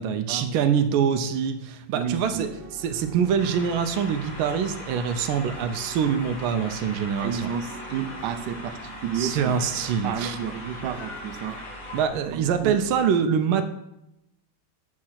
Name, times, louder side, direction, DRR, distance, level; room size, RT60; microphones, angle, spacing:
voice 1, 0.0-2.5 2.8-7.5 9.1-10.4 11.9-13.6, right 7 dB, 90° right, 8 dB, 1.4 m, -24 dB
voice 2, 1.9-2.5 7.2-11.6 12.3-12.8, right 8 dB, 70° right, 9 dB, 1.1 m, -31 dB
sound 1, 2.0-13.0, right 2 dB, 50° right, 0.6 m, -46 dB
sound 2, 3.4-12.1, left 1 dB, 45° left, 1.6 m, -40 dB
7.4 x 4.6 x 5.7 m, 0.85 s
omnidirectional pair, 2.2 m